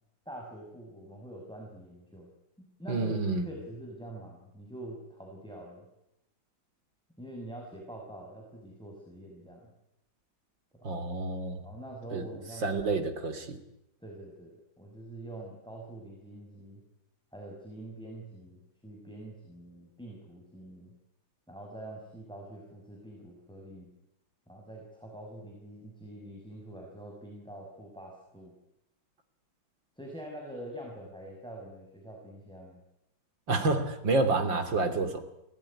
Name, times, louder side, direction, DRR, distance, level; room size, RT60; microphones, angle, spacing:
voice 1, 0.3-2.3 2.6-3.2 3.4-5.9 7.2-9.7 10.7-10.9 11.6-13.0 14.0-16.8 17.3-20.9 21.5-23.9 24.5-28.6 30.0-32.8, right 1 dB, ahead, 0 dB, 5.9 m, -45 dB
voice 2, 2.9-3.4 10.8-11.6 12.1-12.2 12.6-13.6 33.5-35.2, right 3 dB, 65° right, 9 dB, 3.5 m, -29 dB
29.5 x 18.5 x 9.9 m, 0.87 s
omnidirectional pair, 2.2 m